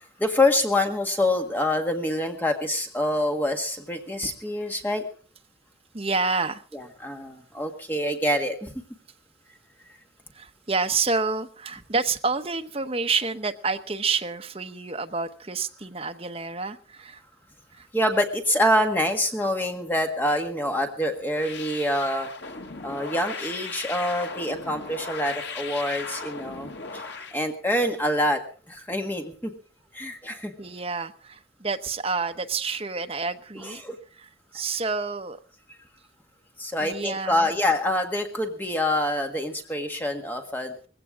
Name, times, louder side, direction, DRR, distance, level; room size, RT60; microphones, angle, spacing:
voice 1, 0.0-5.0 6.7-8.7 17.9-22.3 22.8-29.5 29.9-30.5 33.6-33.9 36.6-40.7, left 1 dB, 10° left, 3 dB, 1.6 m, -26 dB
voice 2, 5.9-6.6 10.3-17.2 17.7-17.9 30.6-33.8 34.2-35.4 36.8-37.5, right 4 dB, 35° right, 6 dB, 1.0 m, -29 dB
sound 1, 21.3-27.4, left 4 dB, 80° left, 1.8 m, -37 dB
20.0 x 16.0 x 3.7 m, 0.40 s
head